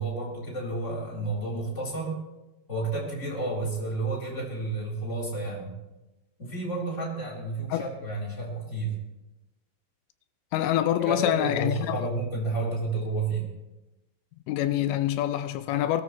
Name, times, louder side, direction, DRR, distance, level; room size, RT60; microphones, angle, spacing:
voice 1, 0.0-2.2 2.7-5.7 6.4-8.9 11.0-13.5, right 2 dB, 15° left, 3.3 m, -31 dB
voice 2, 10.5-12.0 14.5-16.0, left 12 dB, 80° left, 2.7 m, -26 dB
22.0 x 13.5 x 3.1 m
omnidirectional pair, 5.5 m